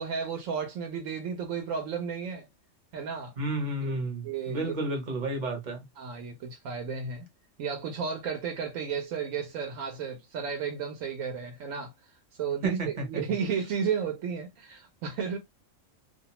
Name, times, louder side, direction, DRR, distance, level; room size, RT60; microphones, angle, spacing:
voice 1, 0.0-2.5 2.9-3.3 3.8-4.7 6.0-7.3 7.6-12.1 12.4-12.8 13.1-15.4, right 6 dB, 85° right, 1.0 m, -33 dB
voice 2, 3.4-5.8 12.6-13.2, right 2 dB, 40° right, 0.8 m, -31 dB
2.4 x 2.1 x 2.9 m
omnidirectional pair, 1.3 m